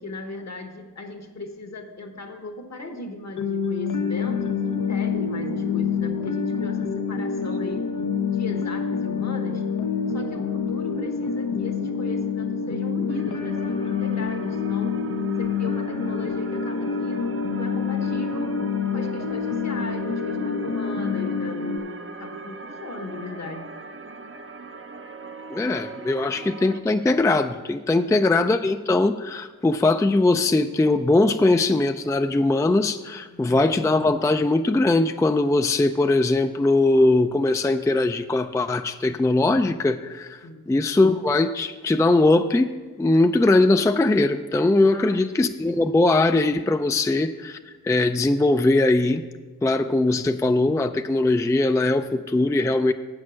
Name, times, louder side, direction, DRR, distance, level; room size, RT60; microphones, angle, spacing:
voice 1, 0.0-7.9 8.3-9.6 10.1-15.0 15.4-18.6 18.9-23.7 33.3-33.6 40.4-40.7 44.9-45.2, left 2 dB, 55° left, 5 dB, 1.2 m, -37 dB
sound 1, 3.3-21.8, left 6 dB, 75° left, 0.7 m, -27 dB
sound 2, 13.1-26.8, right 4 dB, 45° right, 0.6 m, -40 dB
voice 2, 25.5-40.4 40.7-47.6 47.8-49.2 49.6-52.9, left 2 dB, 10° left, 8 dB, 0.4 m, -20 dB
8.4 x 6.4 x 6.2 m, 1.3 s
cardioid pair, 50°, 31 cm